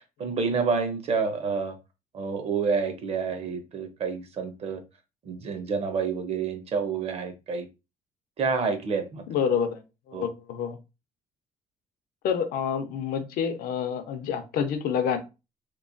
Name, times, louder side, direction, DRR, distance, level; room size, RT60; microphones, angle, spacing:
voice 1, 0.2-1.7 2.1-4.8 5.3-7.7 8.4-9.2 10.1-10.3, right 5 dB, 40° right, 7 dB, 0.6 m, -28 dB
voice 2, 9.3-9.8 10.1-10.8 12.2-15.2, left 7 dB, 75° left, 8 dB, 0.5 m, -28 dB
2.9 x 2.1 x 2.5 m, 0.27 s
cardioid pair, 140°, 15 cm